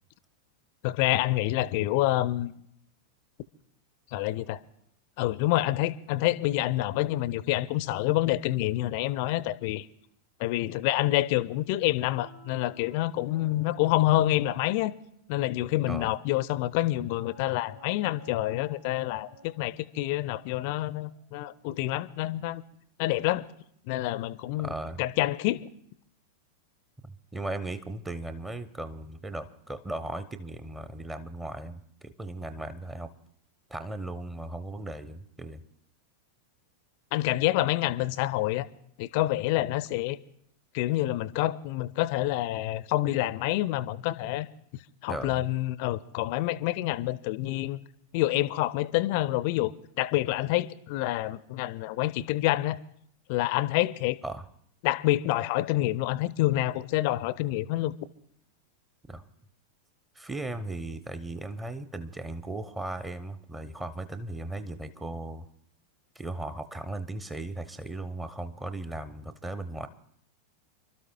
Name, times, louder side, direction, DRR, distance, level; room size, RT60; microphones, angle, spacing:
voice 1, 0.8-2.5 4.1-4.6 5.2-9.9 10.4-14.9 15.3-22.6 23.0-23.4 23.9-24.7 25.0-25.7 37.1-38.7 39.0-40.2 40.7-44.5 45.0-47.8 48.1-52.8 53.3-54.2 54.8-57.9, left 16 dB, 45° left, 0.5 m, -27 dB
sound 1, 12.1-16.3 17.1-21.8, equal, 55° right, 7.3 m, -54 dB
voice 2, 24.6-25.0 27.0-33.1 33.7-35.6 45.1-45.4 54.2-54.5 59.1-59.2 60.1-65.5 66.2-69.9, right 2 dB, 10° right, 0.8 m, -37 dB
29.5 x 12.5 x 2.2 m
figure-of-eight pair, 90°, 0 cm